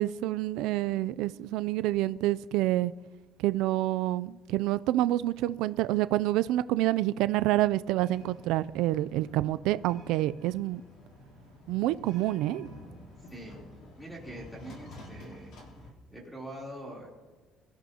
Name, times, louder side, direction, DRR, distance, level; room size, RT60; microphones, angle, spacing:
voice 1, 0.0-2.9 3.4-10.8 11.7-12.7, right 15 dB, 85° right, 15 dB, 0.4 m, -27 dB
sound 1, 8.0-15.9, left 1 dB, 60° left, 3.3 m, -50 dB
voice 2, 14.0-15.6 16.1-17.1, right 1 dB, 5° left, -2 dB, 3.4 m, -43 dB
23.0 x 14.0 x 2.9 m, 1.4 s
cardioid pair, 180°, 0 cm